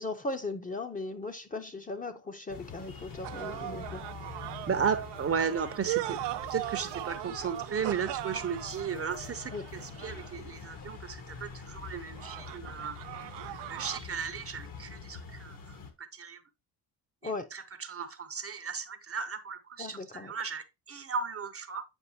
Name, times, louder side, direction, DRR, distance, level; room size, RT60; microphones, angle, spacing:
voice 1, 0.0-4.0 9.5-9.7 17.2-17.5 19.8-20.3, left 2 dB, 20° left, 0.8 m, -37 dB
sound 1, 2.5-15.9, left 5 dB, 50° left, 1.4 m, -45 dB
sound 2, 3.2-10.5 12.1-14.0, right 17 dB, 70° right, 0.5 m, -39 dB
voice 2, 4.7-6.2 6.5-13.0 13.7-15.6 16.1-16.4 17.2-21.8, right 6 dB, 35° right, 0.7 m, -35 dB
8.1 x 4.8 x 2.7 m
cardioid pair, 85°, 43 cm